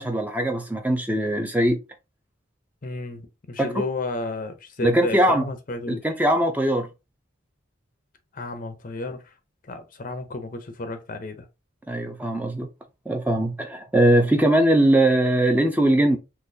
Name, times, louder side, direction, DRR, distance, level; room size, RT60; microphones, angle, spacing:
voice 1, 0.0-1.8 3.6-3.8 4.8-5.5 5.9-6.9 11.9-12.7 13.1-16.2, right 1 dB, 10° right, 0.4 m, -21 dB
voice 2, 2.8-6.1 8.3-9.3 9.6-11.5, left 2 dB, 45° left, 0.5 m, -32 dB
3.8 x 2.9 x 2.7 m
head